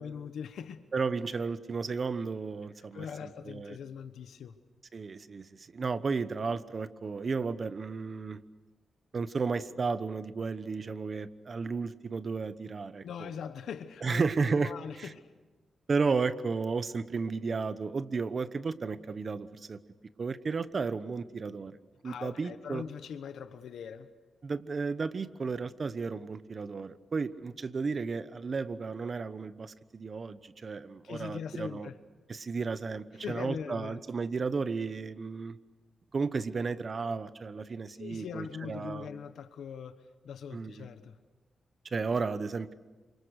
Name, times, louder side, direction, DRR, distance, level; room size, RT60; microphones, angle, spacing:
voice 1, 0.0-0.8 2.9-4.6 13.0-15.3 22.0-24.1 31.0-32.0 33.1-34.0 38.0-41.2, left 7 dB, 90° left, 10 dB, 1.1 m, -41 dB
voice 2, 0.9-3.8 4.9-8.4 9.1-13.3 14.0-14.7 15.0-15.1 15.9-19.8 20.2-21.8 22.0-22.8 24.4-31.9 32.3-35.6 36.1-39.1 40.5-40.9 41.9-42.7, right 4 dB, 45° right, 13 dB, 1.0 m, -33 dB
28.5 x 26.0 x 6.5 m, 1.2 s
cardioid pair, 105°, 0 cm